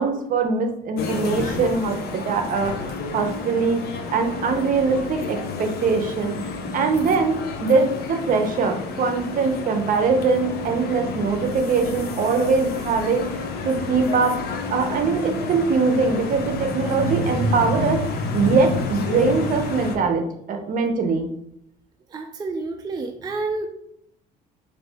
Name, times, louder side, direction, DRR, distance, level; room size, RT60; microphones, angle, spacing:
voice 1, 0.0-3.8 4.1-6.4 6.7-13.3 13.6-18.0 18.3-20.2 20.5-21.3, right 4 dB, 55° right, 5 dB, 0.7 m, -22 dB
sound 1, 1.0-20.0, left 3 dB, 65° left, 0.7 m, -30 dB
voice 2, 22.1-23.7, right 3 dB, 25° right, 4 dB, 0.4 m, -29 dB
4.1 x 2.6 x 3.4 m, 0.73 s
cardioid pair, 110°, 17 cm